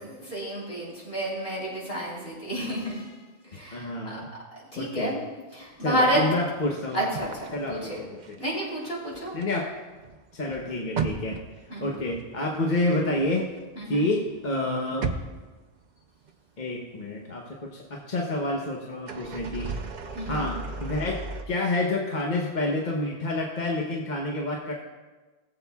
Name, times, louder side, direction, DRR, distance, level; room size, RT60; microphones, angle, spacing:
voice 1, 0.0-3.1 3.5-4.2 4.7-5.2 5.5-6.2 6.9-8.0 8.4-9.4 11.7-11.9 13.8-14.1 20.1-20.4, right 1 dB, 65° left, -5 dB, 3.9 m, -30 dB
voice 2, 3.7-4.3 4.8-5.1 5.8-8.4 9.3-9.7 10.3-11.4 11.8-13.5 13.8-15.1 16.6-19.7 20.3-21.2 21.5-24.7, left 2 dB, 50° left, -2 dB, 1.1 m, -28 dB
sound 1, 5.8-8.5 8.8-14.0 14.3-16.3 16.7-16.8 18.9-21.4, right 4 dB, 50° right, 0.7 m, -36 dB
19.5 x 7.7 x 2.3 m, 1.3 s
omnidirectional pair, 1.1 m